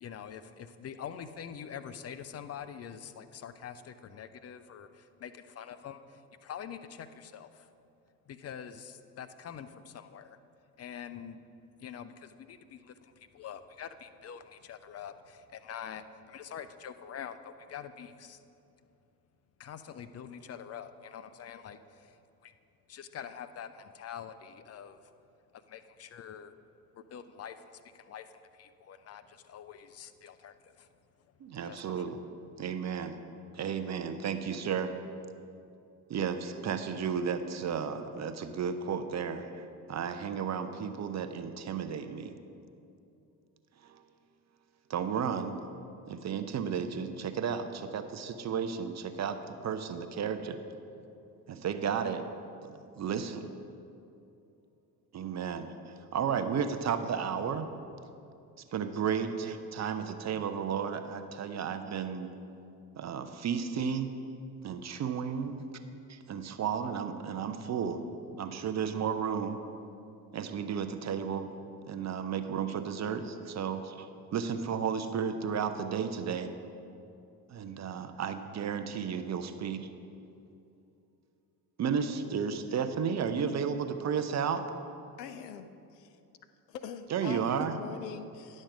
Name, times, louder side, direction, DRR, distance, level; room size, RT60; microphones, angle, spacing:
voice 1, 0.0-7.7 8.3-10.4 10.8-11.4 11.8-18.4 19.6-22.5 22.9-25.1 25.5-26.5 26.9-30.9 31.5-32.0, left 8 dB, 35° left, 11 dB, 0.5 m, -45 dB
voice 2, 31.4-32.2 32.6-33.1 33.5-34.9 36.1-42.3 43.8-44.0 44.9-45.5 46.1-50.6 51.5-52.2 52.6-53.5 55.1-55.7 56.1-57.7 58.7-62.3 63.0-64.1 64.6-65.7 66.1-68.0 68.3-69.6 70.3-71.5 71.9-76.5 77.5-79.9 81.8-84.6 87.1-87.8, right 7 dB, 35° right, 9 dB, 0.7 m, -33 dB
voice 3, 85.2-86.2 86.7-88.6, left 8 dB, 85° left, 10 dB, 0.6 m, -43 dB
10.5 x 6.4 x 4.9 m, 2.7 s
hypercardioid pair, 60°, 47 cm